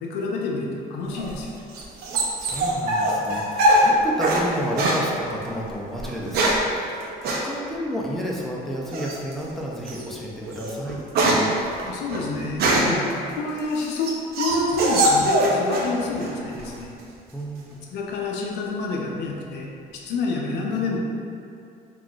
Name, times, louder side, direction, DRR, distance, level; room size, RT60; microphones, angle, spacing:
voice 1, 0.0-1.5 11.8-13.0 13.4-16.9 17.9-21.0, left 3 dB, 80° left, -1 dB, 0.5 m, -28 dB
sound 1, 1.2-4.5 4.8-5.0 6.0-6.7 7.2-7.5 8.9-9.3 9.9-10.0 10.4-13.0 13.6-15.9 16.2-16.8, right 1 dB, 70° right, 0.5 m, -22 dB
voice 2, 2.4-6.5 6.8-11.0 17.3-17.6, equal, ahead, -4 dB, 0.4 m, -31 dB
3.7 x 2.4 x 2.3 m, 2.6 s
cardioid pair, 110°, 17 cm